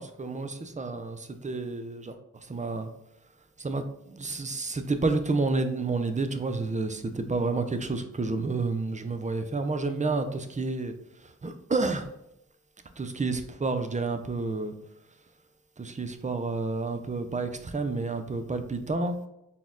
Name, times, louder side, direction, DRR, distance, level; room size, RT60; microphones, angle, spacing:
voice 1, 0.0-2.9 3.6-10.9 11.2-12.0 13.0-14.7 15.8-19.3, right 3 dB, 25° right, 7 dB, 0.5 m, -30 dB
4.2 x 2.3 x 3.6 m, 0.83 s
cardioid pair, 50°, 32 cm